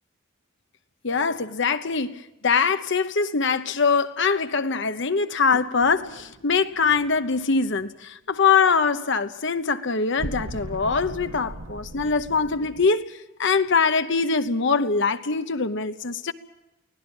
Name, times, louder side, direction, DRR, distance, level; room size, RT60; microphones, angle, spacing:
voice 1, 1.0-16.3, left 5 dB, 65° left, 1.0 m, -23 dB
sound 1, 5.8-7.2 10.2-12.9, right 1 dB, 85° right, 1.2 m, -38 dB
24.0 x 17.0 x 7.2 m
head